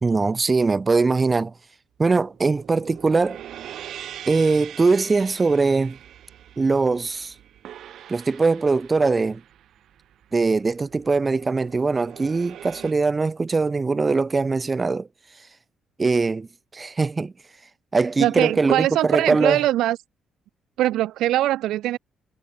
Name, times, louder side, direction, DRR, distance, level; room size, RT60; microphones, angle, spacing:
voice 1, 0.0-1.5 2.0-3.4 4.3-6.0 6.6-7.3 8.1-9.4 10.3-15.1 16.0-16.5 16.7-17.3 17.9-19.6, right 4 dB, 25° right, 1.5 m, -21 dB
sound 1, 2.1-12.9, right 11 dB, 65° right, 4.4 m, -43 dB
voice 2, 18.2-20.0 20.8-22.0, right 14 dB, 85° right, 0.4 m, -22 dB
cardioid pair, 115°, 0 cm